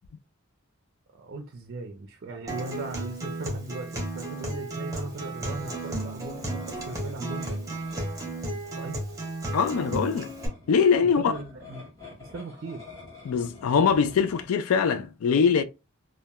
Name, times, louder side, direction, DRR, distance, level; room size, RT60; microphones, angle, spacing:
voice 1, 1.2-7.6 8.2-8.4 8.8-9.1 11.0-11.9 12.2-12.8, right 3 dB, 50° right, 0.4 m, -38 dB
Acoustic guitar, 2.5-10.5, right 2 dB, 15° right, 0.7 m, -34 dB
sound 1, 4.7-14.5, left 3 dB, 15° left, 1.4 m, -49 dB
voice 2, 9.5-10.3 10.7-11.3 13.2-15.6, left 6 dB, 80° left, 0.4 m, -22 dB
2.8 x 2.2 x 2.2 m
head